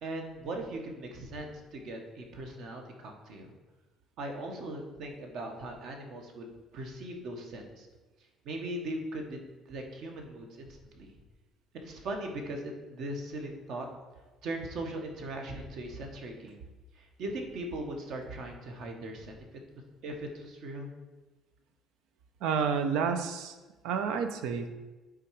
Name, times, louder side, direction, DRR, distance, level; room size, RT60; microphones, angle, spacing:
voice 1, 0.0-3.5 4.2-6.5 6.7-7.9 8.4-9.4 9.7-11.1 11.7-13.9 14.4-16.6 16.9-19.4 20.0-20.9, right 1 dB, 55° right, 3 dB, 1.2 m, -39 dB
voice 2, 22.4-23.5 23.8-24.7, right 6 dB, 85° right, 8 dB, 0.7 m, -29 dB
8.9 x 3.8 x 4.7 m, 1.2 s
cardioid pair, 170°, 0 cm